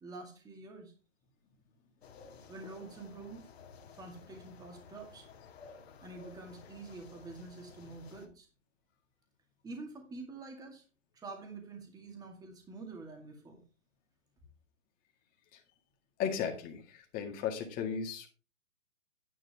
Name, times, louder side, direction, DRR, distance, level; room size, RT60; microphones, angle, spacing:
voice 1, 0.0-0.9 2.5-3.5 3.9-5.3 6.0-8.5 9.6-10.8 11.1-13.6, right 3 dB, 10° right, 3 dB, 2.0 m, -47 dB
sound 1, 2.0-8.3, left 5 dB, 55° left, 2.0 m, -54 dB
voice 2, 16.2-18.3, left 7 dB, 20° left, 3 dB, 2.0 m, -35 dB
9.9 x 9.5 x 3.4 m, 0.32 s
hypercardioid pair, 140°, 38 cm